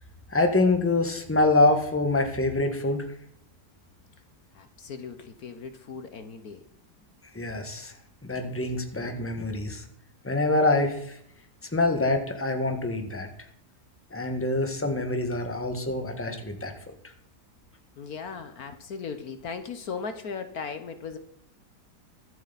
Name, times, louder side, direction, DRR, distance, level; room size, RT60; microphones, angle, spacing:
voice 1, 0.3-3.1 7.3-7.9 8.2-9.8 10.2-11.2 11.7-13.3 14.1-16.7, left 2 dB, 10° left, 5 dB, 1.6 m, -25 dB
voice 2, 4.5-6.6 18.0-21.2, left 5 dB, 65° left, 8 dB, 1.5 m, -37 dB
23.5 x 8.0 x 4.1 m, 0.72 s
omnidirectional pair, 1.8 m